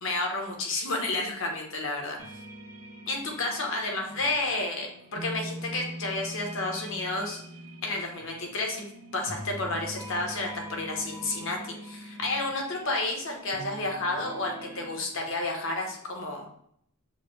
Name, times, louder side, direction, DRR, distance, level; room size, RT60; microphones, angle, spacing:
voice 1, 0.0-2.1 3.1-7.4 7.8-8.8 9.1-16.5, left 2 dB, 60° left, 1 dB, 1.1 m, -31 dB
sound 1, 2.2-15.0, equal, 75° right, 0.9 m, -43 dB
6.6 x 2.2 x 3.2 m, 0.68 s
head